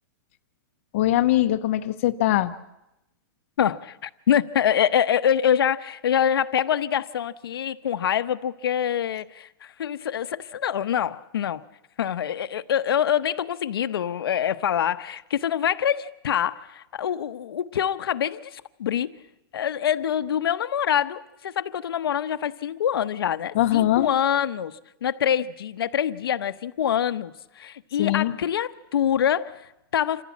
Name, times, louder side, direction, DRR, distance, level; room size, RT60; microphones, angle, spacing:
voice 1, 0.9-2.5 23.5-24.1 28.0-28.4, left 14 dB, 35° left, 0.7 m, -21 dB
voice 2, 3.6-11.6 12.0-19.1 19.5-30.2, left 9 dB, 85° left, 0.9 m, -25 dB
27.0 x 15.0 x 8.5 m
supercardioid pair, 175°, 12 cm